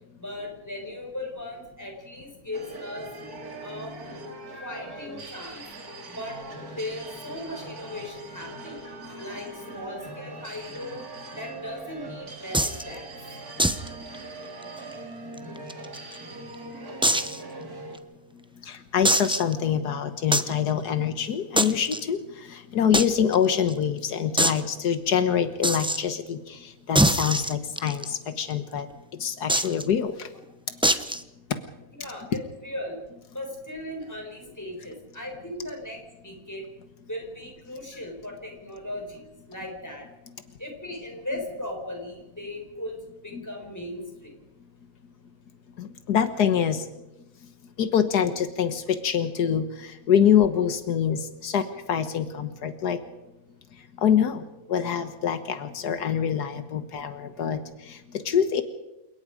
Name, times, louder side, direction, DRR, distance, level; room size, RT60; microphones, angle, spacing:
voice 1, 0.2-3.1 3.6-3.9 4.6-5.6 6.1-6.4 6.8-8.8 9.2-11.0 11.3-13.1 32.0-33.0 33.3-36.6 37.1-40.1 40.6-44.4, left 1 dB, 10° left, 2 dB, 5.2 m, -37 dB
sound 1, 2.5-18.0, right 2 dB, 70° right, 3.0 m, -41 dB
sound 2, 12.5-12.8 13.6-13.9 14.1-14.2 14.6-14.7 15.4-16.2 17.0-17.4 17.9-18.0 19.0-19.5 20.3-20.5 21.6-22.0 22.9-23.1 23.3-23.4 23.7-23.8 24.4-24.6 25.6-26.0 26.9-28.0 29.5-29.8 30.8-31.2, right 1 dB, 5° right, 0.6 m, -23 dB
voice 2, 18.7-22.2 22.5-28.9 29.2-30.3 45.8-46.8 47.8-53.0 54.0-54.4 54.7-57.6 57.9-58.0 58.3-58.6, left 8 dB, 85° left, 10 dB, 1.7 m, -25 dB
28.5 x 18.5 x 5.1 m, 0.96 s
omnidirectional pair, 1.7 m